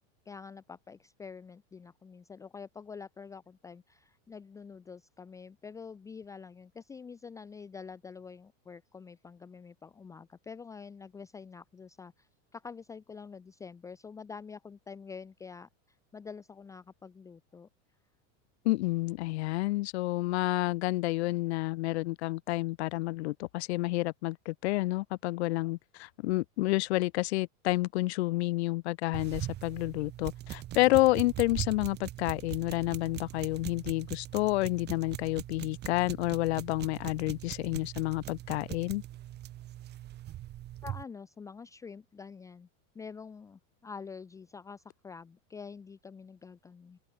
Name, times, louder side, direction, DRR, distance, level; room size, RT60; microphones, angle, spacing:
voice 1, 0.3-17.7 40.8-42.7 42.9-47.0, left 5 dB, 10° left, 0.9 m, -47 dB
voice 2, 18.6-39.0, left 20 dB, 55° left, 0.5 m, -29 dB
sound 1, 29.1-41.0, right 14 dB, 25° right, 3.6 m, -41 dB
open air
supercardioid pair, 175°, 40 cm